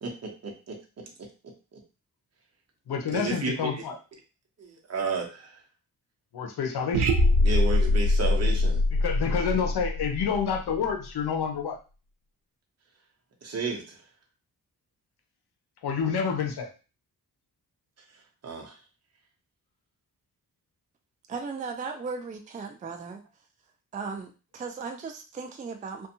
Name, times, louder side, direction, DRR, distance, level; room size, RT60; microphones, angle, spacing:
voice 1, 0.0-1.3 1.7-1.8 3.1-3.8 4.6-5.6 7.4-8.8 13.4-14.0 18.4-18.7, right 4 dB, 40° right, 1 dB, 0.9 m, -33 dB
voice 2, 2.9-4.0 6.3-7.1 8.9-11.8 15.8-16.7, left 6 dB, 75° left, 3 dB, 0.8 m, -28 dB
sound 1, 6.9-11.0, left 2 dB, 80° right, 0.6 m, -23 dB
voice 3, 21.3-23.2 23.9-26.1, right 4 dB, 20° right, 5 dB, 0.4 m, -36 dB
2.6 x 2.3 x 2.7 m, 0.33 s
cardioid pair, 80°, 39 cm